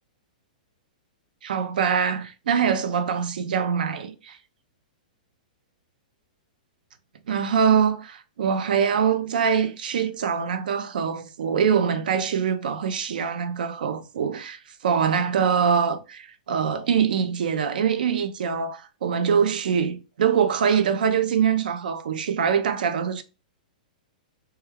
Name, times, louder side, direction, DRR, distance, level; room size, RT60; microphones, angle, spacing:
voice 1, 1.4-4.4 7.3-23.2, right 7 dB, 80° right, 0.4 m, -24 dB
2.3 x 2.2 x 3.0 m
hypercardioid pair, 160°, 5 cm